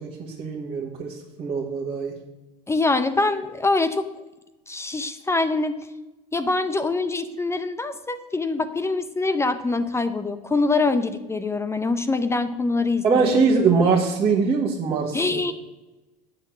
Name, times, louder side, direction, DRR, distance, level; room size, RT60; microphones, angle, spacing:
voice 1, 0.0-2.1 13.0-15.4, right 5 dB, 25° right, -4 dB, 1.7 m, -22 dB
voice 2, 2.7-4.1 4.7-5.8 6.3-13.4 15.1-15.5, left 3 dB, 10° left, 11 dB, 0.7 m, -24 dB
8.9 x 6.6 x 6.3 m, 1.0 s
hypercardioid pair, 100°, 21 cm